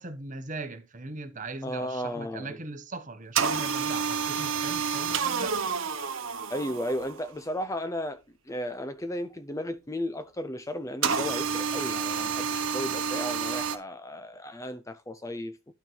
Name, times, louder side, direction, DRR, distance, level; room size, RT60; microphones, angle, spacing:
voice 1, 0.0-5.6, right 3 dB, 35° right, 1.1 m, -39 dB
voice 2, 1.6-2.6 6.5-8.2 8.5-15.7, left 1 dB, 15° left, 0.5 m, -34 dB
sound 1, 3.4-7.3 11.0-13.8, right 6 dB, 60° right, 1.0 m, -29 dB
12.0 x 4.6 x 3.9 m
head